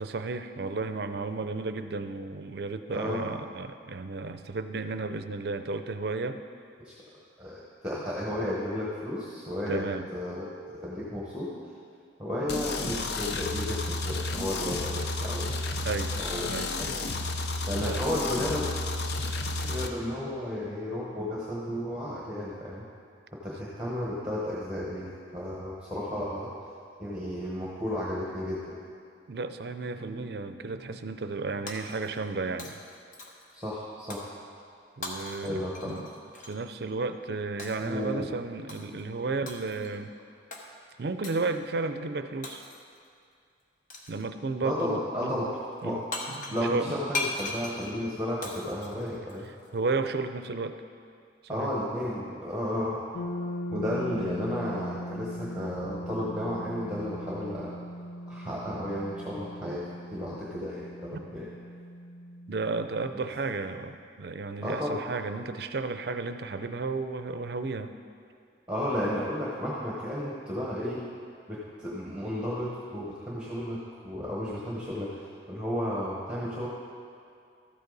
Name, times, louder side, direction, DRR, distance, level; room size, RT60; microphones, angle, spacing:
voice 1, 0.0-6.4 9.7-10.1 15.8-16.1 16.5-16.7 17.8-18.0 29.3-32.8 35.0-36.1 36.5-40.1 41.0-42.6 44.1-45.5 45.8-47.0 49.7-50.8 51.4-51.7 61.1-61.2 62.5-67.9, right 3 dB, 60° right, 9 dB, 0.5 m, -33 dB
voice 2, 2.9-3.2 6.8-6.9 7.4-9.8 10.1-10.5 10.8-11.5 12.2-15.5 16.2-16.9 17.7-18.7 19.6-22.8 23.4-26.5 27.0-28.8 33.5-34.2 35.4-36.0 37.8-38.3 44.6-45.5 45.8-46.0 46.5-49.5 51.5-53.0 53.7-57.7 58.3-61.5 64.6-65.0 68.7-71.0 71.5-75.2 75.5-76.7, left 1 dB, 5° right, -5 dB, 1.1 m, -33 dB
sound 1, 12.5-19.9, left 2 dB, 60° left, 0.6 m, -32 dB
Shatter, 31.7-32.3 32.6-33.5 34.1-34.4 35.0-36.6 37.6-37.9 38.7-39.0 39.5-39.9 40.5-40.7 41.2-41.5 42.4-43.0 43.9-44.3 45.8-45.9 46.1-49.7, left 2 dB, 45° left, 1.0 m, -38 dB
sound 2, 53.1-62.9, equal, 80° left, 1.2 m, -39 dB
13.0 x 8.1 x 4.0 m, 2.3 s
head